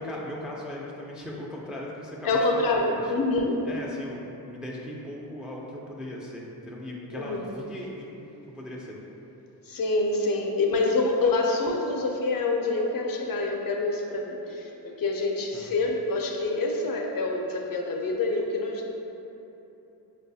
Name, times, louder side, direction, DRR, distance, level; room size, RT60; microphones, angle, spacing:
voice 1, 0.0-3.1 3.7-8.1 8.5-9.0 15.5-15.7, left 1 dB, ahead, -3 dB, 0.3 m, -38 dB
voice 2, 2.2-3.6 7.1-7.5 9.7-19.0, left 2 dB, 55° left, 0 dB, 0.5 m, -26 dB
4.6 x 2.3 x 2.6 m, 3.0 s
cardioid pair, 65°, 43 cm